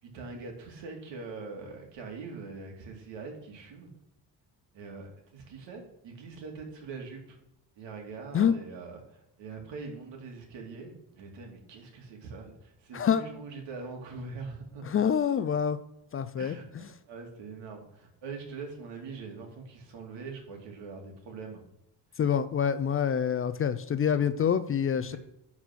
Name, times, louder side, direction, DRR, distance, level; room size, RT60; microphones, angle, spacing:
voice 1, 0.0-3.9 4.7-7.4 7.8-14.8 16.4-21.6 24.9-25.2, right 4 dB, 80° right, 1 dB, 2.8 m, -43 dB
voice 2, 14.9-15.8 16.1-16.5 22.2-25.2, left 8 dB, 30° left, 13 dB, 0.4 m, -26 dB
11.5 x 4.3 x 6.1 m, 0.83 s
cardioid pair, 145°, 43 cm